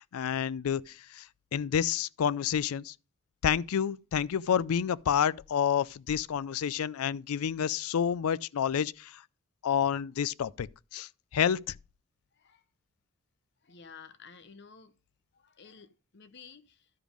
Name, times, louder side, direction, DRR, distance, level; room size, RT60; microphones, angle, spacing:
voice 1, 0.1-1.2 1.5-2.9 3.4-9.2 9.6-10.7 10.9-11.6, left 8 dB, 85° left, 0.4 m, -29 dB
voice 2, 12.3-12.6 13.6-14.9 15.3-16.9, left 5 dB, 55° left, 0.8 m, -52 dB
12.0 x 5.1 x 5.0 m
head